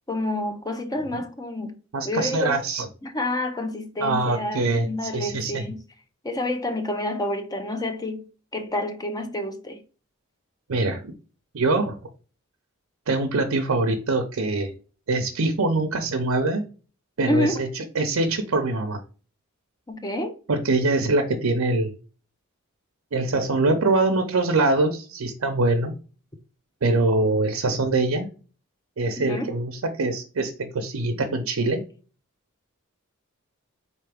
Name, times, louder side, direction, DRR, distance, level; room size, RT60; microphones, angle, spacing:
voice 1, 0.1-1.8 2.0-2.6 3.0-5.8 6.2-8.3 8.5-9.8 17.3-17.6 19.9-20.3 29.2-29.5, left 1 dB, 20° left, 0.6 m, -28 dB
voice 2, 1.9-2.9 4.0-5.7 10.7-11.1 11.5-12.0 13.1-14.7 15.1-16.6 17.2-19.0 20.5-21.9 23.1-25.9 26.8-28.3 29.0-31.9, right 2 dB, 85° right, 0.7 m, -23 dB
4.2 x 3.3 x 3.4 m
head